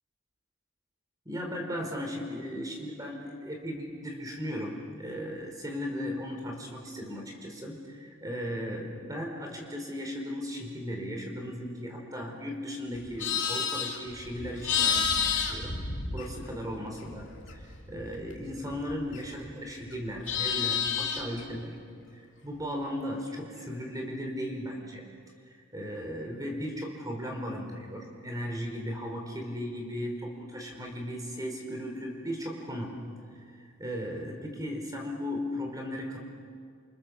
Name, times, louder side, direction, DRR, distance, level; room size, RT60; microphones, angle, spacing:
voice 1, 1.2-15.8 16.1-21.8 22.1-25.1 25.5-33.0 33.6-36.2, equal, 20° right, 1 dB, 4.4 m, -36 dB
Livestock farm animals working animals, 12.9-16.7 17.0-19.5 19.8-21.4, left 7 dB, 60° left, 3.5 m, -31 dB
28.5 x 28.0 x 7.2 m, 2.1 s
head